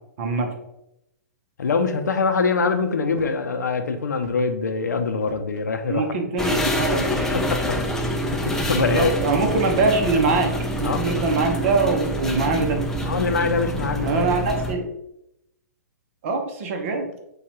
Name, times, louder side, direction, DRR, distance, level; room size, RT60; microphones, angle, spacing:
voice 1, 0.2-0.5 5.9-7.3 8.8-10.5 10.8-12.8 14.0-14.9 16.2-17.1, right 3 dB, 50° right, 4 dB, 0.8 m, -23 dB
voice 2, 1.6-6.1 7.3-7.8 8.3-9.1 10.8-11.2 13.0-14.3, left 4 dB, 75° left, 7 dB, 0.5 m, -24 dB
sound 1, 3.1-3.5 4.1-4.6 5.2-5.6 6.7-7.0 7.7-8.0 8.7-9.0, right 1 dB, 30° right, 1.2 m, -40 dB
sound 2, 6.4-14.7, equal, 5° left, 0.5 m, -26 dB
6.7 x 2.4 x 2.9 m, 0.82 s
figure-of-eight pair, 115°, 9 cm